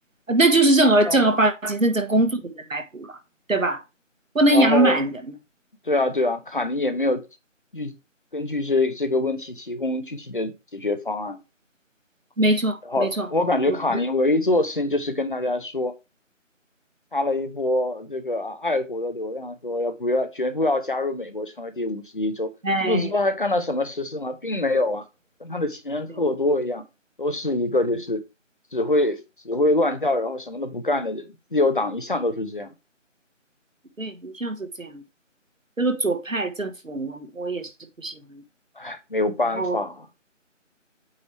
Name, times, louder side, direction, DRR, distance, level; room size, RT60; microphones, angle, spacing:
voice 1, 0.3-3.2 3.5-3.8 4.3-5.1 12.4-13.3 13.7-14.0 22.6-23.1 34.0-35.0 35.8-37.7 38.0-38.4 39.6-39.8, right 2 dB, 90° right, 1.4 m, -22 dB
voice 2, 4.5-5.0 5.9-7.2 7.7-8.0 8.3-11.4 12.8-15.9 17.1-22.5 22.8-25.0 25.4-26.8 27.2-28.2 28.7-29.2 29.4-32.7 38.8-40.1, left 2 dB, 40° left, 0.8 m, -25 dB
8.5 x 3.0 x 4.7 m
figure-of-eight pair, 165°, 39 cm